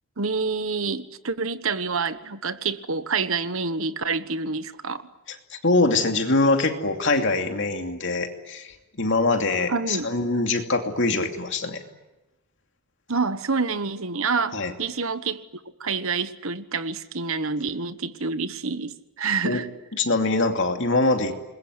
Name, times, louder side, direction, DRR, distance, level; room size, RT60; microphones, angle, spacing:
voice 1, 0.2-5.1 9.7-10.1 13.1-15.4 15.8-19.7, right 4 dB, 65° right, 12 dB, 1.3 m, -27 dB
voice 2, 5.5-11.8 14.5-14.7 19.4-19.6 20.0-21.3, left 2 dB, 55° left, 5 dB, 2.7 m, -23 dB
27.5 x 21.5 x 9.9 m, 1.0 s
head